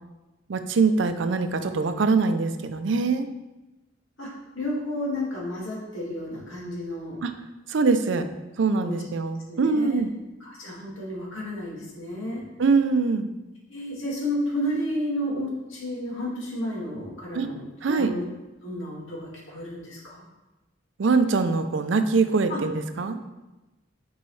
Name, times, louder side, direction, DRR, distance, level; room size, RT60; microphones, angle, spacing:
voice 1, 0.5-3.3 7.2-7.3 7.7-8.3 8.6-10.1 12.6-13.3 17.3-17.5 17.8-18.1 21.0-23.2, right 4 dB, 70° right, 10 dB, 0.4 m, -23 dB
voice 2, 4.2-7.2 8.8-10.0 10.4-12.4 13.7-18.2 18.6-20.2 22.5-22.6, left 1 dB, 85° left, -5 dB, 2.0 m, -32 dB
6.8 x 4.6 x 3.2 m, 1.1 s
head